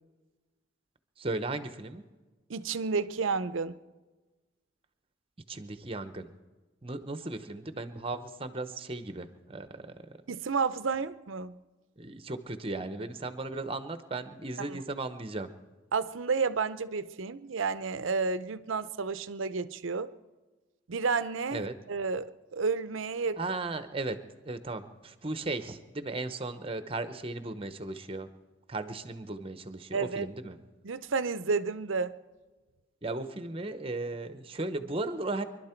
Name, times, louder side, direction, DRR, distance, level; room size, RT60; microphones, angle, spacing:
voice 1, 1.2-2.0 5.5-6.3 6.8-9.9 12.0-15.5 21.5-21.8 23.4-24.2 24.4-28.3 28.7-30.6 33.0-35.4, right 2 dB, 30° right, 0.8 m, -36 dB
voice 2, 2.5-3.8 10.3-11.6 14.6-14.8 15.9-20.1 20.9-23.4 29.9-30.3 30.8-32.1, right 4 dB, 80° right, 0.6 m, -31 dB
25.0 x 12.0 x 4.4 m
head